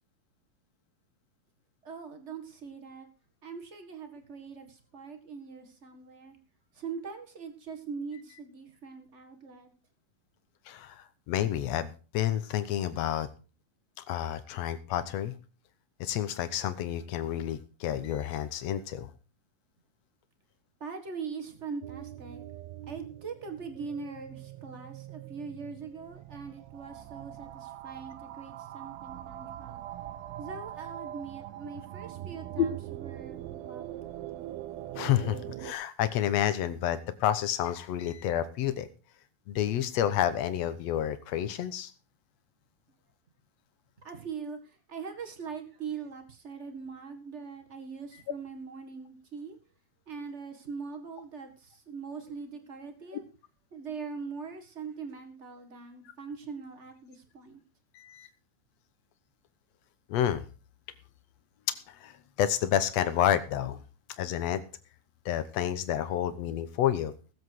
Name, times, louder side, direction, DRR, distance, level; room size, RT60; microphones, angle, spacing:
voice 1, 1.8-3.1 3.4-6.4 6.7-9.7 20.8-22.4 22.9-29.8 30.4-34.0 44.0-49.6 50.1-53.2 53.7-57.6, right 5 dB, 45° right, 5 dB, 0.9 m, -42 dB
voice 2, 10.7-13.3 14.1-15.3 16.0-19.1 32.6-32.7 34.9-38.9 39.5-41.9 57.9-58.3 60.1-60.4 61.9-63.8 64.2-64.6 65.2-67.1, left 11 dB, 75° left, 12 dB, 1.6 m, -29 dB
sound 1, 21.8-35.7, right 13 dB, 85° right, 2.8 m, -42 dB
18.5 x 8.0 x 4.7 m, 0.35 s
omnidirectional pair, 4.2 m